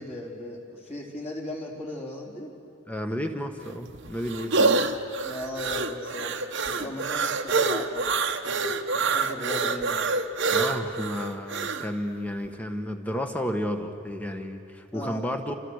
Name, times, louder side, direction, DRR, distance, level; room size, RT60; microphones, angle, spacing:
voice 1, 0.0-2.5 5.2-6.4 6.7-8.1 8.4-10.0 14.9-15.3, left 1 dB, 30° left, -2 dB, 4.1 m, -37 dB
voice 2, 2.9-4.7 10.5-15.5, equal, 5° left, 5 dB, 1.5 m, -32 dB
sound 1, 3.6-11.9, right 4 dB, 55° right, 1.2 m, -26 dB
29.0 x 27.0 x 6.6 m, 2.6 s
head